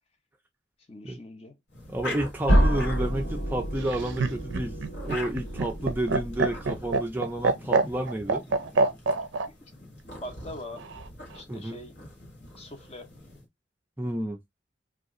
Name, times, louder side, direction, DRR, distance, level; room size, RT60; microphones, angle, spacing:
voice 1, 0.9-1.6 9.5-9.6 10.2-10.8 11.3-11.9 12.6-13.1, left 1 dB, 30° left, 0.6 m, -42 dB
sound 1, 1.7-13.4, left 1 dB, 55° left, 1.2 m, -43 dB
voice 2, 1.9-4.8 5.0-8.5 11.5-11.8 14.0-14.4, right 1 dB, 10° right, 0.4 m, -30 dB
sound 2, 2.5-7.2, equal, 85° left, 1.3 m, -28 dB
Laughter, 3.8-9.5 10.8-11.4, right 3 dB, 70° right, 0.5 m, -26 dB
2.7 x 2.4 x 3.6 m
head